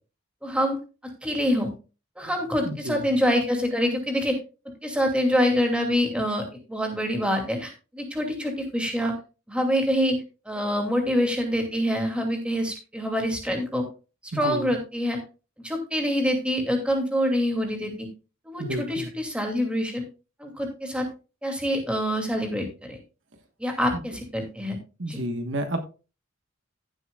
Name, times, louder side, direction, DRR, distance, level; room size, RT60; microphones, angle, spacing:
voice 1, 0.4-0.8 1.2-1.7 2.2-4.4 4.8-9.1 9.5-10.2 10.5-13.8 14.3-15.2 15.6-18.1 18.4-20.0 20.4-21.1 21.4-23.0 23.6-24.8 25.1-25.2, equal, 5° right, 3 dB, 2.4 m, -25 dB
voice 2, 2.6-3.1 14.3-14.7 18.6-19.1 23.9-24.0 25.0-25.8, right 1 dB, 60° right, 7 dB, 1.2 m, -31 dB
15.5 x 7.7 x 2.3 m, 0.32 s
head